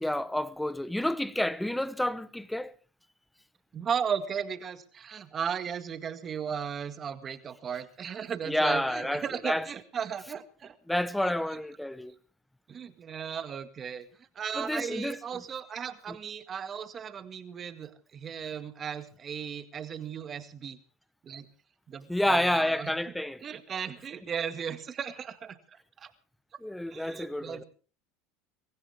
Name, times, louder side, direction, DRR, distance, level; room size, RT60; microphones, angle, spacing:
voice 1, 0.0-2.7 8.4-9.6 10.9-12.1 14.6-15.2 16.1-16.2 22.1-23.4 26.6-27.6, left 1 dB, 5° left, 1.0 m, -29 dB
voice 2, 3.7-10.8 11.2-11.6 12.7-14.1 14.4-20.8 21.2-21.5 21.9-22.9 23.4-25.6 26.0-26.1 26.9-27.6, right 7 dB, 35° right, 1.9 m, -36 dB
23.5 x 15.0 x 3.5 m
supercardioid pair, 110°, 0 cm